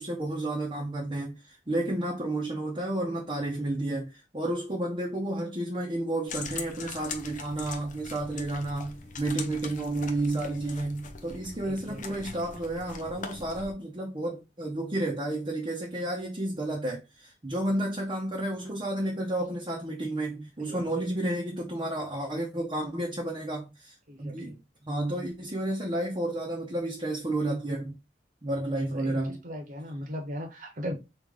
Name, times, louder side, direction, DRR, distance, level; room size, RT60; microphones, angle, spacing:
voice 1, 0.0-24.6 24.8-28.0 28.4-29.4, right 1 dB, 30° right, 0.9 m, -31 dB
sound 1, 6.3-13.7, left 5 dB, 50° left, 0.6 m, -42 dB
voice 2, 11.6-12.3 20.6-21.0 24.1-24.6 28.9-31.0, equal, 50° right, 1.2 m, -39 dB
3.3 x 3.2 x 3.6 m
head